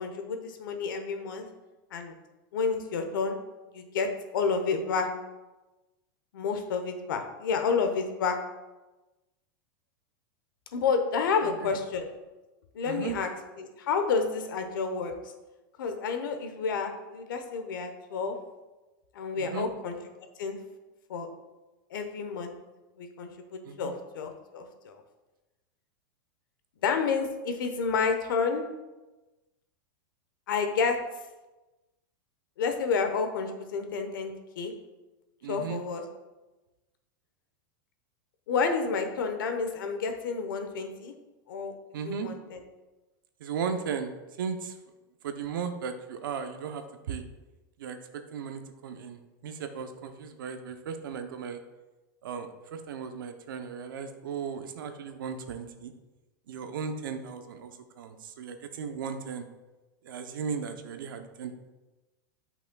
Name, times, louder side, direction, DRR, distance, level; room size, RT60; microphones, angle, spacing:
voice 1, 0.0-1.5 1.9-2.1 2.5-3.4 3.7-4.1 4.3-5.1 6.3-8.4 10.7-12.1 12.7-13.3 13.6-15.1 15.8-18.3 19.1-20.0 20.4-20.6 21.1-21.3 21.9-22.5 23.0-25.0 26.8-28.6 30.5-31.0 32.6-34.7 35.5-36.0 38.5-41.1 41.5-41.7 42.0-42.6, left 5 dB, 80° left, 6 dB, 0.9 m, -30 dB
voice 2, 11.4-11.7 12.8-13.2 19.4-19.7 23.6-23.9 35.4-35.8 41.9-42.3 43.4-44.1 44.4-44.8 45.2-47.2 47.8-51.6 52.2-55.9 56.5-59.5 60.0-61.6, right 6 dB, 80° right, 7 dB, 0.7 m, -36 dB
8.2 x 5.7 x 2.3 m, 1.1 s
supercardioid pair, 135°, 11 cm